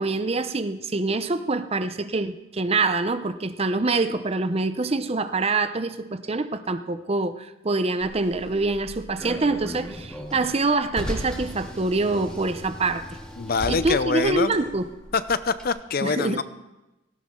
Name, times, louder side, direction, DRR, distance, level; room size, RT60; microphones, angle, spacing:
voice 1, 0.0-13.1 13.7-14.9 16.0-16.4, right 3 dB, 30° right, 11 dB, 0.6 m, -25 dB
Car, 8.0-15.7, equal, 5° left, 2.6 m, -37 dB
voice 2, 13.4-14.5 15.1-16.4, left 4 dB, 45° left, 13 dB, 0.6 m, -24 dB
17.5 x 17.5 x 3.8 m, 0.99 s
head